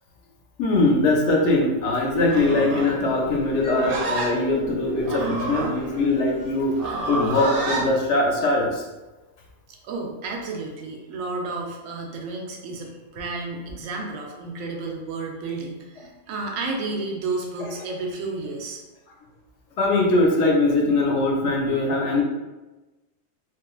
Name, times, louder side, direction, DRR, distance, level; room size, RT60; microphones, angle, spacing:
voice 1, 0.6-8.8 19.8-22.2, left 2 dB, 70° left, -1 dB, 0.8 m, -21 dB
Livestock farm animals working animals, 2.2-7.9, right 2 dB, 60° right, 0.5 m, -29 dB
Mallet percussion, 3.6-8.2, left 6 dB, 30° left, 0.6 m, -40 dB
voice 2, 9.7-18.8, right 3 dB, 85° right, 1 dB, 1.0 m, -32 dB
3.0 x 2.4 x 2.3 m, 1.1 s
omnidirectional pair, 1.3 m